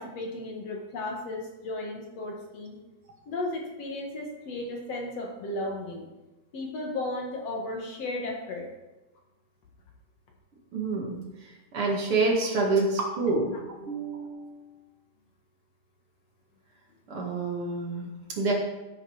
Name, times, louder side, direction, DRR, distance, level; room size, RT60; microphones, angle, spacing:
voice 1, 0.0-2.8 3.3-6.1 6.5-8.7 13.0-13.1, left 2 dB, 60° left, 0 dB, 2.6 m, -34 dB
voice 2, 10.7-11.2 11.7-14.6 17.1-18.5, right 3 dB, 50° right, -1 dB, 2.7 m, -28 dB
14.5 x 7.9 x 4.8 m, 1.1 s
omnidirectional pair, 3.4 m